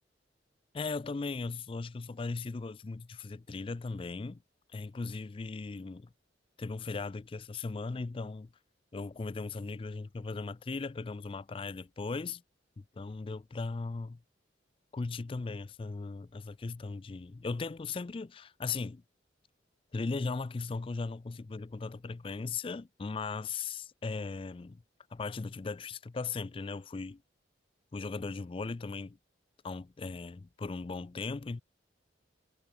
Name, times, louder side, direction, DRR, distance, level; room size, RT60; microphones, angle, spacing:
voice 1, 0.7-4.4 4.7-6.1 6.6-8.5 8.9-12.4 12.8-14.2 14.9-19.0 19.9-24.8 25.1-27.2 27.9-29.2 29.6-31.6, left 4 dB, 30° left, 0.3 m, -38 dB
head